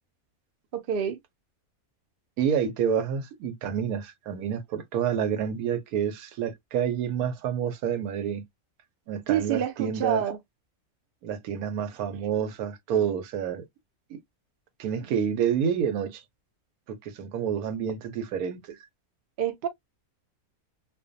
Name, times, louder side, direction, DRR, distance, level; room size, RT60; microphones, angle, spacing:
voice 1, 0.7-1.2 9.3-10.4 19.4-19.7, right 9 dB, 70° right, 0.5 m, -27 dB
voice 2, 2.4-8.4 9.1-10.2 11.2-13.6 14.1-14.2 14.8-16.2 16.9-18.8, right 8 dB, 85° right, 1.1 m, -28 dB
2.4 x 2.2 x 2.5 m
omnidirectional pair, 1.5 m